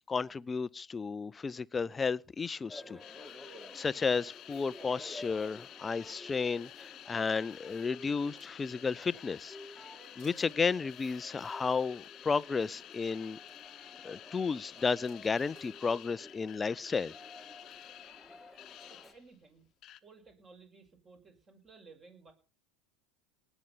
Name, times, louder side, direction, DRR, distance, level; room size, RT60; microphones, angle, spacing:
voice 1, 0.1-3.0 3.3-9.6 10.2-13.4 14.0-17.1, left 5 dB, 20° left, 0.6 m, -33 dB
sound 1, 2.7-19.1, left 1 dB, ahead, 1.9 m, -53 dB
sound 2, 3.0-19.3 19.8-20.0, left 12 dB, 45° left, 1.0 m, -51 dB
sound 3, 8.3-8.7 9.2-9.9 10.2-10.5 12.0-12.1 12.3-12.4 13.5-13.6 14.6-15.7, right 4 dB, 55° right, 6.9 m, -64 dB
voice 2, 18.9-19.7 20.0-22.3, right 4 dB, 30° right, 5.8 m, -57 dB
19.5 x 8.1 x 5.6 m
hypercardioid pair, 85°, 0 cm